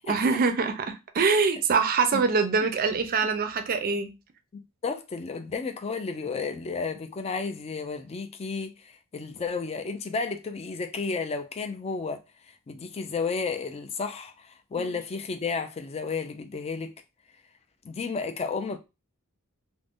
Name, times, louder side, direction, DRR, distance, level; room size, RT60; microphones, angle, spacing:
voice 1, 0.1-4.1 14.8-15.0, right 4 dB, 40° right, 0.4 m, -24 dB
voice 2, 4.5-12.2 12.7-17.0 17.8-18.8, left 4 dB, 30° left, 0.4 m, -32 dB
2.5 x 2.1 x 3.5 m
head